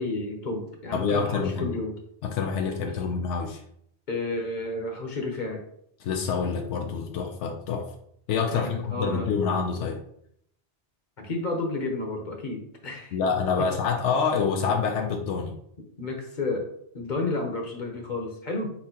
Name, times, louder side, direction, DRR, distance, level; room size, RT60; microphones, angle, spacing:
voice 1, 0.0-1.9 4.1-5.6 8.5-9.3 11.2-13.1 13.6-13.7 16.0-16.7 16.9-18.7, left 2 dB, 45° left, 2 dB, 0.9 m, -31 dB
voice 2, 0.9-1.8 2.2-3.6 6.0-7.9 8.3-10.0 13.1-15.6, left 5 dB, 90° left, 3 dB, 0.9 m, -27 dB
4.3 x 4.2 x 2.8 m, 0.69 s
omnidirectional pair, 1.2 m